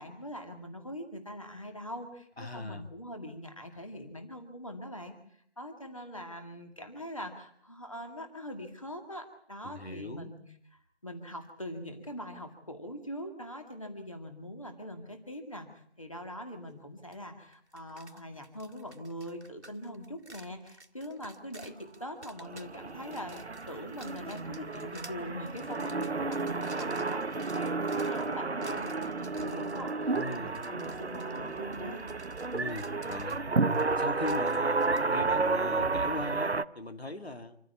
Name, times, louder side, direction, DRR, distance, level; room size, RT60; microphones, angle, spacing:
voice 1, 0.0-5.1 5.6-10.4 11.0-32.0, equal, 30° left, 5 dB, 2.1 m, -42 dB
voice 2, 2.4-2.9 9.6-10.3 30.1-30.6 32.5-33.4 34.0-37.6, left 2 dB, 65° left, 7 dB, 2.4 m, -39 dB
sound 1, 17.1-17.2 17.5-35.0, right 2 dB, 90° right, 2.0 m, -54 dB
sound 2, 19.9-25.5, equal, 5° left, 2.7 m, -63 dB
sound 3, 22.4-36.6, right 3 dB, 70° right, 1.0 m, -32 dB
26.5 x 15.0 x 8.6 m, 0.65 s
figure-of-eight pair, 180°, 33 cm